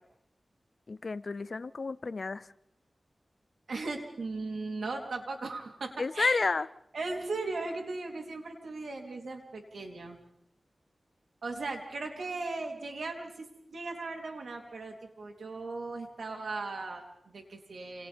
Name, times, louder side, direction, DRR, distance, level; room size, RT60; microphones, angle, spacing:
voice 1, 0.9-2.5 6.0-6.7, left 3 dB, 60° left, 16 dB, 0.7 m, -31 dB
voice 2, 3.7-6.4 6.9-10.2 11.4-18.1, right 3 dB, 90° right, 1 dB, 3.7 m, -38 dB
28.5 x 28.5 x 3.7 m, 0.76 s
wide cardioid pair, 80°, 0 cm